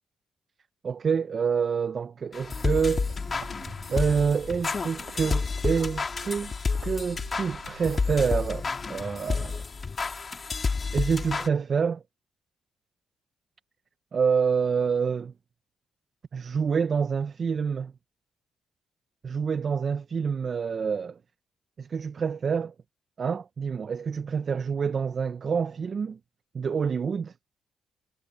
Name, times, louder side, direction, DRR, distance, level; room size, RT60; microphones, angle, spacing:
voice 1, 0.8-3.2 3.9-6.5 6.8-9.6 10.9-12.0 14.1-15.3 16.3-17.9 19.2-21.2 21.8-22.7 23.2-26.2 26.5-27.3, right 6 dB, 50° right, 1.0 m, -27 dB
sound 1, 2.3-11.5, left 4 dB, 40° left, 2.4 m, -30 dB
sound 2, 2.9-9.0, right 16 dB, 90° right, 2.8 m, -50 dB
supercardioid pair, 60°, 0 cm